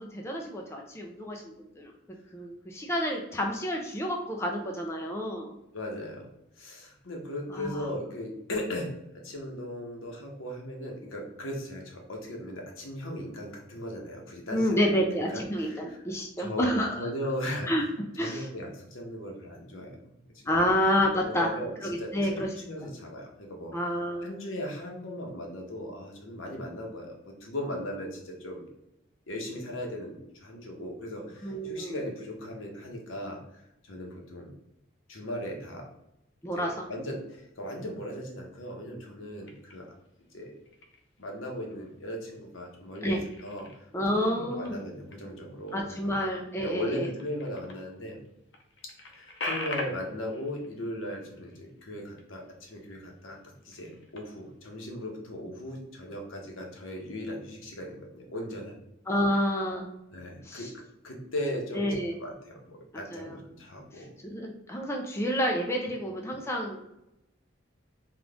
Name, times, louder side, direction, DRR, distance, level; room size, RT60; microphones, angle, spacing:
voice 1, 0.0-1.9 2.3-5.6 7.5-7.9 14.5-17.1 17.7-17.8 18.2-18.5 20.5-21.5 21.8-22.5 23.7-24.3 31.4-32.0 36.4-36.7 43.0-43.2 43.9-44.8 45.7-47.1 59.1-59.9 60.4-60.7 61.7-62.2 62.9-63.4 63.9-66.8, equal, 15° left, 1 dB, 0.4 m, -29 dB
voice 2, 5.7-6.3 6.6-15.0 15.3-16.0 16.4-16.7 17.0-17.9 18.2-20.0 20.6-20.7 21.2-23.7 24.2-28.7 29.3-33.4 33.8-34.5 35.1-35.9 36.5-39.9 40.3-40.5 41.2-43.7 44.1-46.0 46.6-48.2 49.1-58.8 60.1-61.9 62.2-64.1, left 1 dB, 85° left, 0 dB, 0.9 m, -38 dB
sound 1, 39.4-40.1 40.6-41.2 41.6-42.4 42.7-47.9 48.2-48.3 48.5-52.5 52.8-53.1 53.5-54.6, left 2 dB, 60° left, 0.6 m, -43 dB
3.8 x 2.4 x 3.4 m, 0.86 s
head